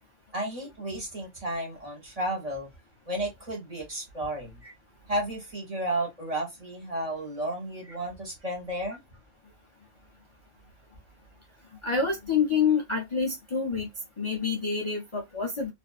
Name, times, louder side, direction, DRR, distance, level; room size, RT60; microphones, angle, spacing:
voice 1, 0.3-2.7 3.1-4.6 5.1-9.0, right 1 dB, 35° right, 1.2 m, -33 dB
voice 2, 11.8-13.9 14.2-15.7, left 5 dB, 35° left, 0.5 m, -27 dB
2.5 x 2.5 x 2.3 m
omnidirectional pair, 1.2 m